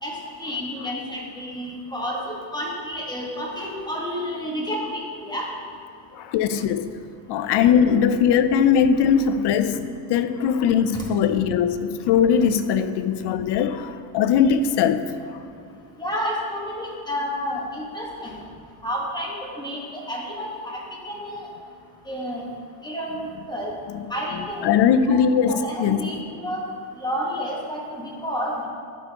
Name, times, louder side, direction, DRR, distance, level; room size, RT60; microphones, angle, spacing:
voice 1, 0.0-5.5 7.8-7.9 10.9-11.0 16.0-18.3 18.8-20.8 21.1-21.5 22.1-22.4 22.8-23.7 24.1-24.7 25.5-26.2 26.4-26.6 27.0-28.7, equal, 10° left, 1.5 m, -30 dB
voice 2, 6.1-6.9 7.3-15.0 23.9-24.0 24.6-26.0, left 7 dB, 60° left, 0.5 m, -20 dB
11.5 x 4.4 x 2.9 m
cardioid pair, 105°, 45 cm